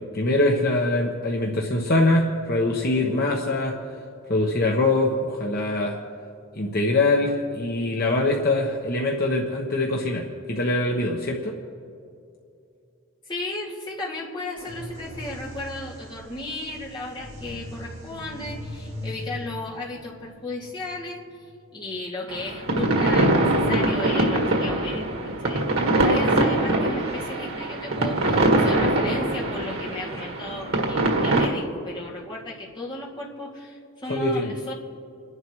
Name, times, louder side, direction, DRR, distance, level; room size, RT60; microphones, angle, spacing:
voice 1, 0.1-3.7 4.3-6.0 6.5-11.6 34.1-34.5, left 2 dB, 45° left, -1 dB, 1.2 m, -23 dB
voice 2, 13.3-21.2 21.7-34.7, left 2 dB, 20° left, -4 dB, 2.3 m, -35 dB
sound 1, 14.6-22.1, left 1 dB, 40° right, 3.2 m, -40 dB
sound 2, 22.3-31.5, right 1 dB, 85° right, 1.7 m, -23 dB
30.0 x 11.0 x 3.2 m, 2.5 s
head